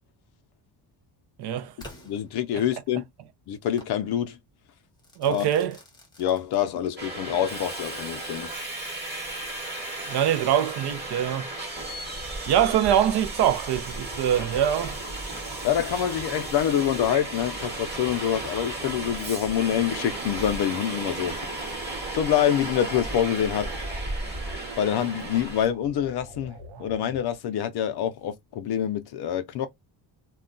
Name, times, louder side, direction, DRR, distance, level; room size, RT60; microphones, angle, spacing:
voice 1, 1.4-1.7 5.2-5.8 10.1-11.5 12.5-15.0, right 10 dB, 60° right, 0.5 m, -23 dB
Crackle / Fireworks, 1.8-3.0 3.8-4.0 5.0-7.0, left 1 dB, 10° left, 0.7 m, -48 dB
voice 2, 2.0-3.0 3.5-4.4 5.3-5.5 6.2-8.5 15.6-21.4 22.1-23.7 24.8-29.7, left 10 dB, 60° left, 0.5 m, -26 dB
Subway metro underground, 7.0-25.7, right 2 dB, 20° right, 1.1 m, -34 dB
sound 1, 19.4-21.8 22.5-27.6, right 5 dB, 80° right, 0.9 m, -45 dB
2.2 x 2.2 x 3.7 m
cardioid pair, 170°, 46 cm